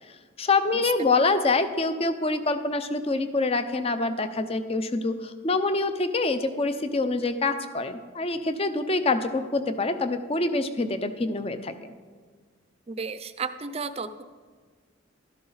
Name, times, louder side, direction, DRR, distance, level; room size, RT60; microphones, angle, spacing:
voice 1, 0.4-11.9, left 3 dB, 30° left, 10 dB, 0.6 m, -26 dB
voice 2, 12.9-14.2, right 5 dB, 30° right, 12 dB, 0.5 m, -33 dB
12.5 x 12.0 x 4.0 m, 1.5 s
head